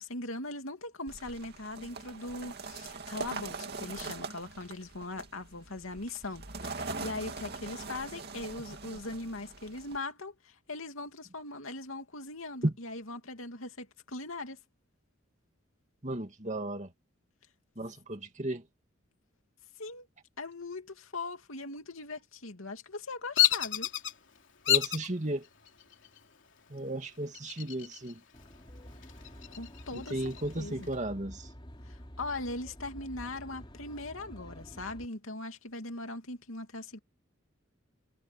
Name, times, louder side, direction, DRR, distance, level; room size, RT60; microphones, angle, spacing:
voice 1, 0.0-14.6 19.8-20.1 20.4-23.9 29.5-30.9 31.9-37.0, left 2 dB, 85° left, 2.7 m, -40 dB
sound 1, 1.1-10.0, right 3 dB, 50° right, 2.5 m, -42 dB
voice 2, 16.0-16.9 17.8-18.6 24.7-25.5 26.7-28.2 29.9-31.5, right 1 dB, 35° right, 2.6 m, -34 dB
Bird vocalization bird call bird song, 23.4-24.1 24.7-25.1 25.7-26.2 27.3-28.1 28.5-28.6 29.0-30.4, left 13 dB, 65° left, 3.3 m, -28 dB
Aircraft, 28.3-35.1, equal, 25° left, 3.3 m, -49 dB
head